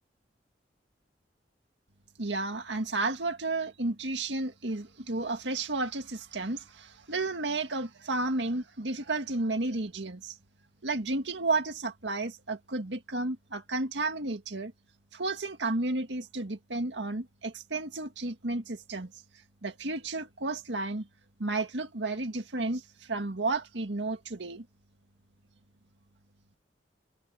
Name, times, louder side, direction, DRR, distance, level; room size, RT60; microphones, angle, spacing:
voice 1, 2.2-10.4 10.8-14.7 15.1-19.1 19.6-21.1 21.4-24.7, right 2 dB, 90° right, 1.9 m, -32 dB
head